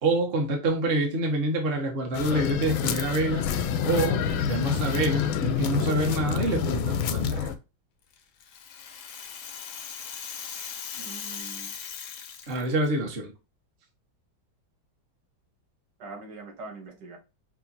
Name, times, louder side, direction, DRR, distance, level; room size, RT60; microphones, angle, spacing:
voice 1, 0.0-3.5 3.8-4.2 4.5-7.5 12.5-13.3, right 2 dB, 35° right, 1.0 m, -26 dB
sound 1, 2.1-7.6, left 8 dB, 90° left, 1.4 m, -27 dB
Rattle (instrument), 8.1-12.9, left 7 dB, 75° left, 0.7 m, -39 dB
voice 2, 10.9-11.7 16.0-17.2, right 3 dB, 65° right, 1.7 m, -42 dB
5.8 x 2.5 x 2.6 m
omnidirectional pair, 2.2 m